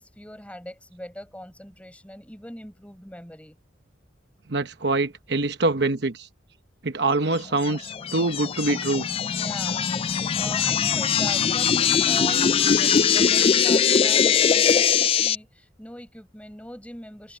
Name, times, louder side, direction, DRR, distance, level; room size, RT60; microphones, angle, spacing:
voice 1, 0.0-3.6 9.3-9.9 10.3-17.4, left 1 dB, 5° left, 6.8 m, -41 dB
voice 2, 4.5-6.3 6.8-9.1, right 2 dB, 60° right, 1.0 m, -24 dB
sound 1, 7.6-15.4, left 7 dB, 30° left, 0.3 m, -21 dB
head